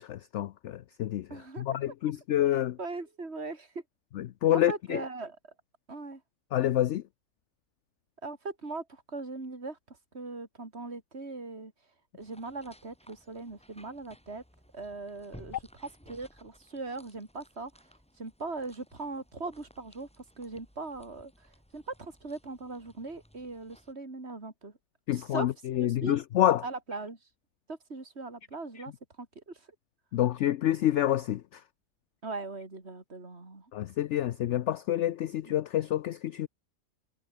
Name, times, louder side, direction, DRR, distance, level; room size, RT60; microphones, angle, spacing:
voice 1, 0.0-1.3 1.6-2.8 4.2-5.0 6.5-7.0 25.1-26.6 30.1-31.6 33.7-36.5, left 12 dB, 65° left, 0.8 m, -28 dB
voice 2, 1.3-1.7 2.8-3.8 4.5-5.4 5.9-6.2 8.2-11.7 12.1-14.4 14.7-17.7 18.2-21.5 21.7-24.7 25.1-25.5 25.7-26.2 26.6-27.2 27.7-28.9 29.2-29.6 32.2-33.7, right 3 dB, 45° right, 4.0 m, -40 dB
sound 1, 12.2-23.9, equal, 5° left, 4.8 m, -58 dB
omnidirectional pair, 1.6 m